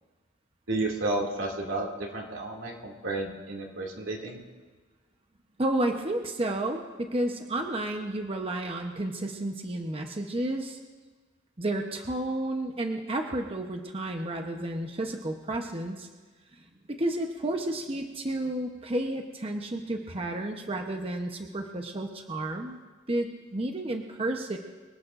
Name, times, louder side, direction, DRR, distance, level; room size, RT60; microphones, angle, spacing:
voice 1, 0.7-4.4, right 2 dB, 90° right, -1 dB, 2.4 m, -32 dB
voice 2, 5.6-10.8 11.6-16.1 16.6-22.8 23.1-24.6, right 1 dB, 30° right, 3 dB, 0.9 m, -31 dB
25.0 x 18.5 x 2.6 m, 1.3 s
head